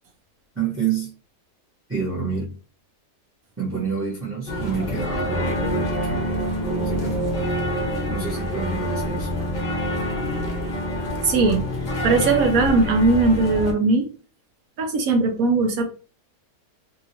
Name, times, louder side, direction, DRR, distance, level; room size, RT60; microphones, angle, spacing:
voice 1, 0.5-1.1 1.9-2.5 3.6-6.5 6.8-7.5 8.1-9.3, right 5 dB, 10° right, 0.7 m, -28 dB
sound 1, 4.5-13.7, equal, 45° left, 0.6 m, -26 dB
voice 2, 11.2-11.6 12.0-14.1 14.8-15.8, right 3 dB, 75° right, 1.1 m, -19 dB
2.9 x 2.7 x 2.8 m
omnidirectional pair, 1.6 m